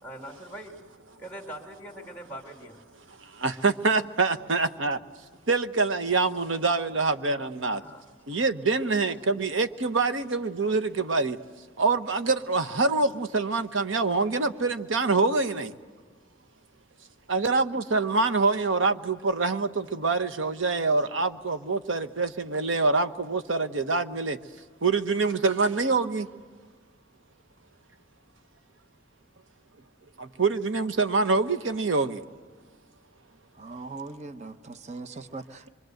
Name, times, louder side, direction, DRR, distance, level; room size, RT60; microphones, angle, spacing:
voice 1, 0.0-0.8 1.2-2.8 7.8-8.0 9.0-9.1, right 1 dB, 10° left, 2.3 m, -42 dB
voice 2, 3.4-5.0 5.5-7.8 8.3-11.4 11.8-15.7 17.3-24.4 24.8-26.3 30.2-32.2, right 3 dB, 85° right, 1.1 m, -25 dB
voice 3, 33.6-35.7, right 3 dB, 35° right, 0.8 m, -40 dB
25.5 x 24.0 x 7.9 m
head